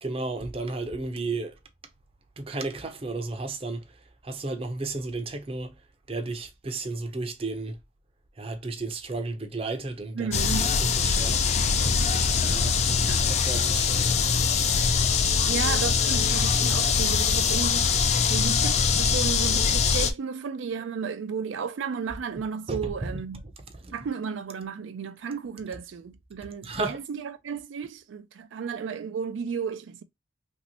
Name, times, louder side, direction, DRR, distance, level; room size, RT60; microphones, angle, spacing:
voice 1, 0.0-1.6 2.4-3.8 4.2-5.7 6.1-7.8 8.4-13.0 13.5-14.3 15.2-15.3 22.7-23.2 23.8-23.9 26.6-27.0, right 3 dB, 30° right, 0.5 m, -33 dB
voice 2, 10.1-10.7 12.9-13.3 15.5-17.9 18.3-23.4 23.9-30.0, right 6 dB, 90° right, 0.4 m, -33 dB
sound 1, 10.3-20.1, left 5 dB, 35° left, 0.3 m, -23 dB
3.0 x 2.7 x 2.8 m
head